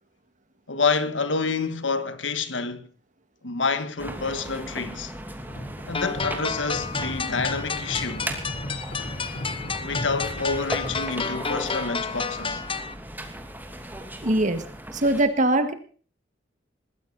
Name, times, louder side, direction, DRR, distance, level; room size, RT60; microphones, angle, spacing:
voice 1, 0.7-2.9 3.4-5.1 5.9-8.3 9.8-12.6, left 4 dB, 75° left, 1.7 m, -28 dB
sound 1, 4.0-15.2, right 1 dB, 10° right, 2.7 m, -38 dB
sound 2, 5.4-11.0, left 1 dB, 60° left, 5.1 m, -37 dB
sound 3, 5.9-12.9, left 5 dB, 30° left, 1.0 m, -31 dB
voice 2, 14.2-14.6 14.9-15.7, right 1 dB, 40° right, 2.1 m, -21 dB
21.0 x 15.5 x 4.2 m
head